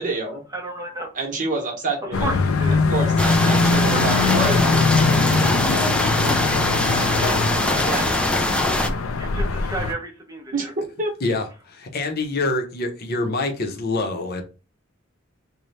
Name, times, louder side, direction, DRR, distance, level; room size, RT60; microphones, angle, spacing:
voice 1, 0.0-0.4 1.1-2.3 2.9-6.4 6.8-8.2 10.5-11.1, right 2 dB, 40° right, 1.0 m, -29 dB
voice 2, 0.5-1.1 2.2-2.8 3.7-4.4 9.2-10.7, right 1 dB, 15° right, 0.7 m, -32 dB
sound 1, 2.1-9.9, left 4 dB, 80° left, 0.4 m, -22 dB
sound 2, 3.2-8.9, left 1 dB, 5° left, 0.3 m, -22 dB
voice 3, 11.7-14.4, left 2 dB, 50° left, 0.8 m, -25 dB
3.3 x 2.2 x 4.0 m
head